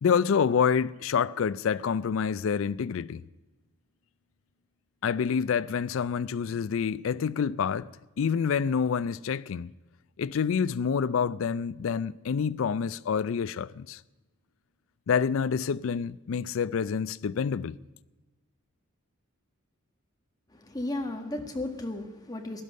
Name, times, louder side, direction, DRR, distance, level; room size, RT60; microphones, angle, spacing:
voice 1, 0.0-3.2 5.0-7.9 8.2-9.7 10.2-14.0 15.1-17.8, left 6 dB, 65° left, 0.4 m, -27 dB
voice 2, 20.5-22.6, left 1 dB, 15° left, 1.4 m, -34 dB
15.5 x 11.0 x 6.4 m
head